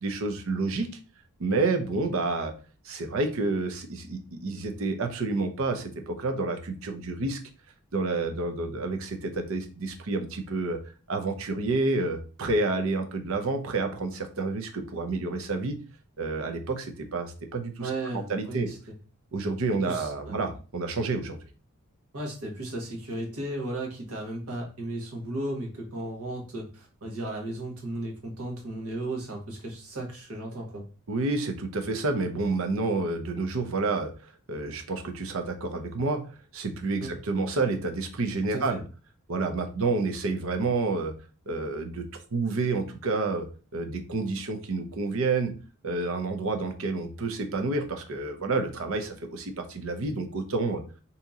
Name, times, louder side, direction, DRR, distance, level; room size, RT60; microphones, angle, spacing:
voice 1, 0.0-0.9 1.4-2.5 2.8-7.4 7.9-10.8 11.1-15.8 16.2-17.9 18.3-18.7 19.3-21.4 31.1-34.1 34.5-36.2 36.5-38.8 39.3-41.1 41.5-43.5 43.7-45.5 45.8-50.8, right 3 dB, 70° right, 6 dB, 0.6 m, -29 dB
voice 2, 17.8-19.0 19.9-20.4 22.1-30.9 37.0-37.2 38.5-38.8, right 1 dB, 85° right, 0 dB, 1.2 m, -35 dB
2.8 x 2.7 x 3.6 m, 0.35 s
head